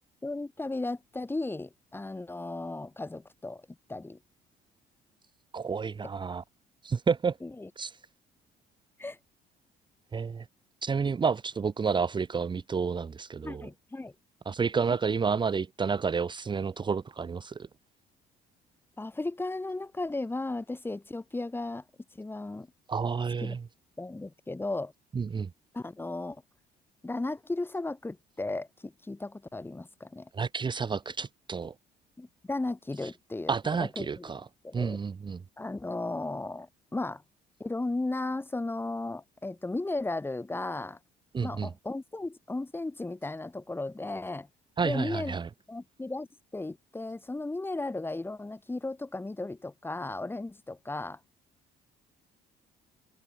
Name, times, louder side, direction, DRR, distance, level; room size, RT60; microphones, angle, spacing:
voice 1, 0.2-3.6 3.9-4.2 7.4-7.7 9.0-9.2 13.4-14.1 19.0-21.8 22.1-22.7 23.4-23.6 24.0-24.9 25.7-26.4 27.0-30.3 32.2-33.5 33.8-34.2 34.6-35.0 35.6-37.2 37.6-41.0 41.4-44.5 44.8-45.4 45.7-46.3 46.5-51.2, left 2 dB, 15° left, 3.2 m, -35 dB
voice 2, 5.5-6.4 6.8-7.4 7.8-8.0 10.1-10.5 10.8-13.7 14.4-17.7 22.9-23.6 25.1-25.5 30.3-31.7 33.0-33.1 33.5-34.5 34.7-35.4 41.3-41.7 44.8-45.5, right 5 dB, 25° right, 1.2 m, -30 dB
cardioid pair, 110°, 17 cm